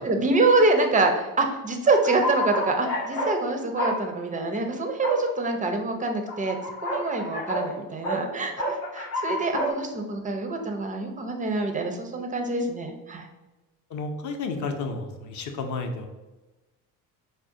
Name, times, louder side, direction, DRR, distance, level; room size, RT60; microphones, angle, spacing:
voice 1, 0.0-6.6 6.8-13.3, right 3 dB, 20° right, 4 dB, 0.4 m, -25 dB
sound 1, 1.9-3.4 3.8-4.0 5.0-5.2 6.3-7.7 8.0-8.2 8.6-9.7, equal, 85° left, 0.7 m, -29 dB
voice 2, 13.9-16.1, left 3 dB, 45° left, 4 dB, 0.6 m, -31 dB
3.9 x 2.1 x 2.5 m, 1.1 s
hypercardioid pair, 60°, 44 cm